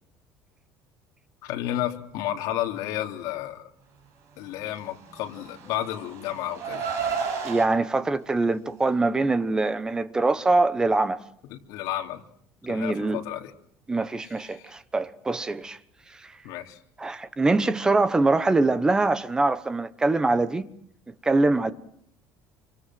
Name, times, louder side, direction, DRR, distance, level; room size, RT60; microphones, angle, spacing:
voice 1, 1.4-3.7 4.4-6.9 11.5-12.2 12.7-13.5 14.3-14.7 16.4-16.8, left 12 dB, 70° left, 3.1 m, -32 dB
Car, 5.2-7.7, right 6 dB, 45° right, 7.4 m, -31 dB
voice 2, 7.4-11.2 12.6-13.2 13.9-15.8 16.1-16.3 17.0-20.7 21.2-21.7, right 3 dB, 10° right, 1.1 m, -23 dB
27.5 x 25.0 x 7.8 m
cardioid pair, 175°, 7 cm